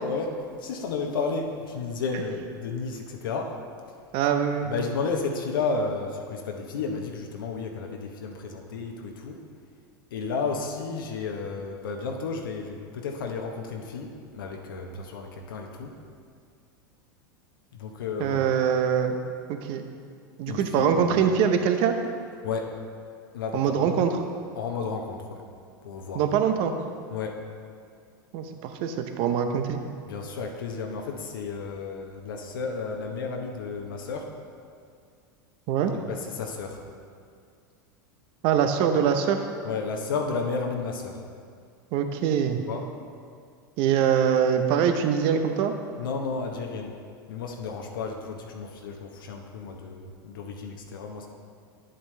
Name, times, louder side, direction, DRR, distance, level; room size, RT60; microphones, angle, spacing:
voice 1, 0.0-3.5 4.7-9.4 10.1-15.9 17.7-18.5 20.5-21.2 22.4-22.7 23.3-23.8 24.5-25.4 25.8-26.2 27.1-27.4 30.1-34.3 35.9-36.8 39.6-41.2 42.7-42.8 46.0-46.9 47.3-51.3, left 4 dB, 75° left, 2 dB, 1.0 m, -32 dB
voice 2, 4.1-4.7 18.2-19.2 19.5-19.8 20.4-21.9 23.5-24.2 26.1-26.7 28.3-29.8 35.7-35.9 38.4-39.4 41.9-42.6 43.8-45.7, right 8 dB, 50° right, 6 dB, 0.8 m, -23 dB
9.7 x 7.7 x 3.3 m, 2.3 s
hypercardioid pair, 95°, 11 cm